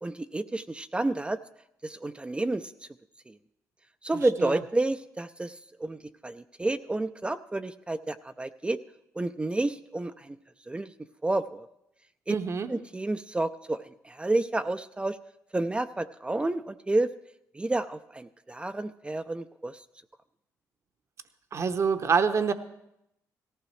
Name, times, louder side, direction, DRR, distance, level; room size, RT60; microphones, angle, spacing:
voice 1, 0.0-1.4 1.8-2.7 3.3-3.4 4.0-8.8 9.1-10.4 10.7-10.9 11.2-11.7 12.3-12.4 12.7-15.2 15.5-17.1 17.5-19.8, right 2 dB, 15° right, 9 dB, 0.5 m, -30 dB
voice 2, 12.3-12.7 21.5-22.5, right 6 dB, 45° right, 9 dB, 0.9 m, -26 dB
18.0 x 15.0 x 3.3 m, 0.83 s
cardioid pair, 80°, 7 cm